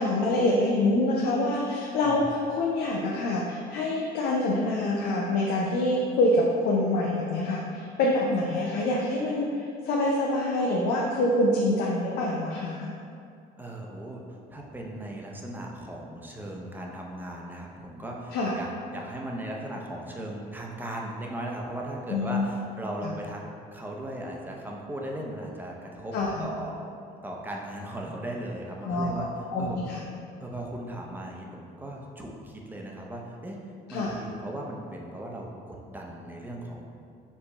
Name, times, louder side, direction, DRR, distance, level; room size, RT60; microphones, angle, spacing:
voice 1, 0.0-12.9 18.3-18.6 22.1-22.5 23.0-23.1 26.1-26.5 28.8-30.0 33.9-34.2, left 1 dB, 80° left, -2 dB, 0.5 m, -26 dB
voice 2, 13.6-23.4 23.7-26.9 27.2-29.3 29.6-29.8 30.4-33.6 33.9-36.9, right 1 dB, 10° right, -1 dB, 0.5 m, -37 dB
4.6 x 2.1 x 3.9 m, 2.5 s
cardioid pair, 110°, 17 cm